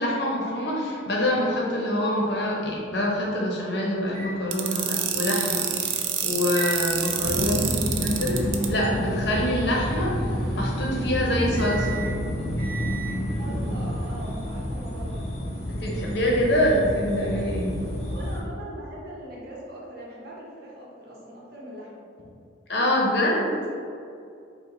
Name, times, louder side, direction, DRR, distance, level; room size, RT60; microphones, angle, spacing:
voice 1, 0.0-5.7 6.2-7.6 8.0-12.0 15.8-17.7 22.7-23.6, left 1 dB, 55° left, -3 dB, 0.9 m, -25 dB
sound 1, 4.1-13.2, right 3 dB, 15° left, 1.3 m, -39 dB
sound 2, 4.5-8.7, right 9 dB, 70° right, 0.4 m, -27 dB
sound 3, 7.2-18.4, equal, 35° left, 0.6 m, -29 dB
voice 2, 13.4-15.2 18.1-22.0, right 1 dB, 50° right, -4 dB, 1.0 m, -41 dB
5.6 x 2.3 x 4.0 m, 2.5 s
head